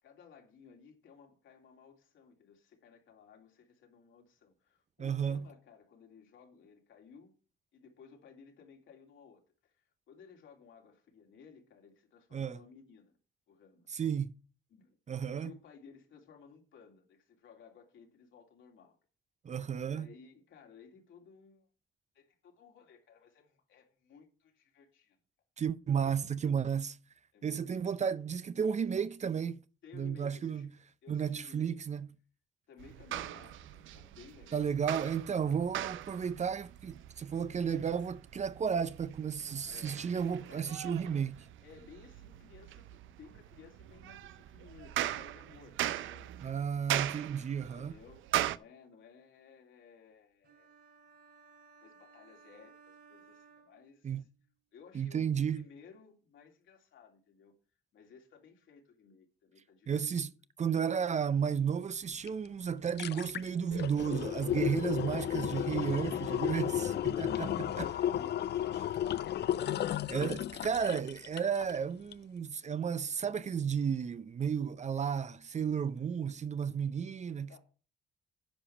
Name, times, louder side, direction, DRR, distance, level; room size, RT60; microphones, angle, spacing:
voice 1, 0.0-7.3 7.7-13.2 13.5-13.9 14.7-19.0 19.8-21.7 22.1-25.2 26.3-26.4 27.3-27.7 29.8-30.7 31.0-31.8 32.7-34.6 35.5-35.7 39.6-40.1 40.5-41.1 41.6-46.5 47.6-50.7 51.8-54.3 54.7-57.5 57.9-60.3 67.3-69.1 70.2-70.6 77.5-77.6, left 6 dB, 75° left, 3.1 m, -57 dB
voice 2, 5.0-5.5 12.3-12.6 13.9-14.3 15.1-15.5 19.4-20.1 25.6-27.0 27.4-29.6 29.9-30.7 31.1-32.1 34.5-41.3 46.4-47.9 54.0-54.2 54.9-55.6 59.9-60.3 60.6-67.9 70.1-77.6, right 7 dB, 35° right, 0.6 m, -33 dB
sound 1, 32.8-48.6, right 13 dB, 75° right, 0.6 m, -40 dB
sound 2, 50.4-54.3, right 5 dB, 55° right, 3.3 m, -60 dB
sound 3, 62.3-62.4 62.7-71.8 72.1-72.2, left 11 dB, 60° left, 0.5 m, -33 dB
10.0 x 5.1 x 7.2 m
cardioid pair, 90°, 20 cm